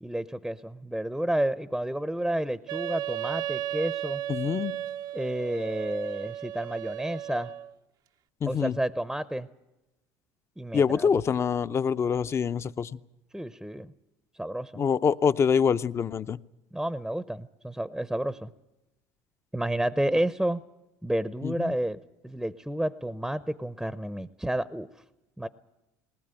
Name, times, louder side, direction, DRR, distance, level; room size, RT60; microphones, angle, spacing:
voice 1, 0.0-4.2 5.1-7.5 8.5-9.5 10.6-11.4 13.3-13.9 14.4-14.8 16.7-18.5 19.5-20.6 21.0-25.0 25.4-25.5, right 1 dB, 5° right, 16 dB, 0.7 m, -30 dB
Wind instrument woodwind instrument, 2.7-7.7, right 12 dB, 60° right, 0.7 m, -35 dB
voice 2, 4.3-4.8 8.4-8.8 10.7-13.0 14.7-16.4 21.4-21.7, left 6 dB, 35° left, 14 dB, 0.7 m, -25 dB
20.0 x 19.0 x 9.0 m, 1.0 s
supercardioid pair, 90°, 8 cm